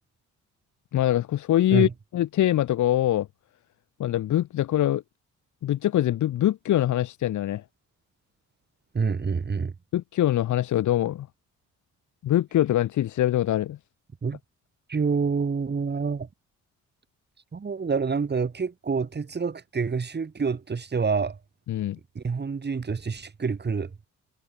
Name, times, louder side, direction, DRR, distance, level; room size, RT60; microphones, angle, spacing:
voice 1, 0.9-3.3 4.0-5.0 5.6-7.6 9.9-11.3 12.2-13.8 21.7-22.0, left 12 dB, 75° left, 2.2 m, -23 dB
voice 2, 8.9-9.7 14.2-14.4 14.9-16.3 17.5-21.4 22.2-24.1, right 5 dB, 35° right, 5.5 m, -27 dB
cardioid pair, 90°, 30 cm